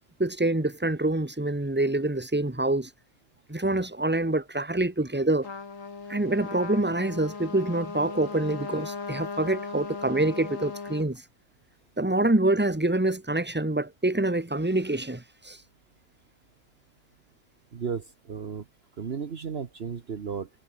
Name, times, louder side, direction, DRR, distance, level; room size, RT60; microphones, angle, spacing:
voice 1, 0.2-2.9 3.5-5.5 6.1-11.2 12.0-15.6, right 2 dB, 10° right, 1.9 m, -26 dB
Trumpet, 5.4-11.1, left 4 dB, 80° left, 2.7 m, -37 dB
voice 2, 17.7-18.6 19.0-20.5, right 6 dB, 55° right, 1.3 m, -34 dB
omnidirectional pair, 1.3 m